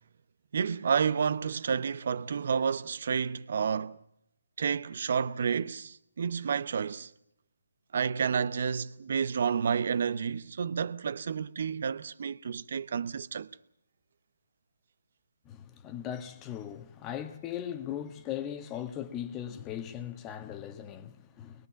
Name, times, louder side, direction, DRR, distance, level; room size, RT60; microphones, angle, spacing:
voice 1, 0.5-4.0 4.6-7.1 7.9-13.5, right 6 dB, 55° right, 0.8 m, -30 dB
voice 2, 15.4-21.7, left 10 dB, 15° left, 1.4 m, -39 dB
23.0 x 21.5 x 7.0 m
figure-of-eight pair, 150°, 0 cm